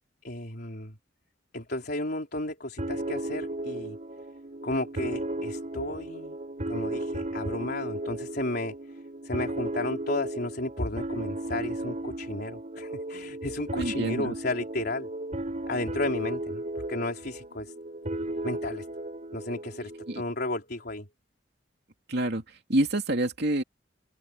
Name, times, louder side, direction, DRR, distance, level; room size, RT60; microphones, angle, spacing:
voice 1, 0.2-1.0 1.5-4.0 4.6-6.4 6.7-8.8 9.2-15.1 15.7-16.6 16.9-17.7 18.4-18.9 19.3-21.1, left 2 dB, 60° left, 4.1 m, -33 dB
sound 1, 2.8-20.2, right 1 dB, 40° right, 7.6 m, -35 dB
voice 2, 13.8-14.3 20.1-20.2 22.1-23.6, right 1 dB, 65° right, 2.9 m, -27 dB
open air
head